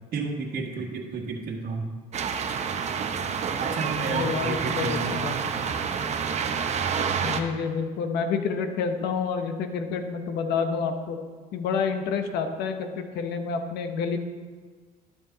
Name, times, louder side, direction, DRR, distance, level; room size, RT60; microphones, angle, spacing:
voice 1, 0.1-1.9 3.6-5.1, right 4 dB, 60° right, 0 dB, 1.5 m, -32 dB
sound 1, 2.1-7.4, right 6 dB, 40° right, 0.7 m, -28 dB
voice 2, 4.1-5.4 7.2-11.2 11.5-14.2, left 5 dB, 80° left, 7 dB, 0.9 m, -28 dB
11.0 x 6.6 x 3.9 m, 1.5 s
cardioid pair, 110°, 17 cm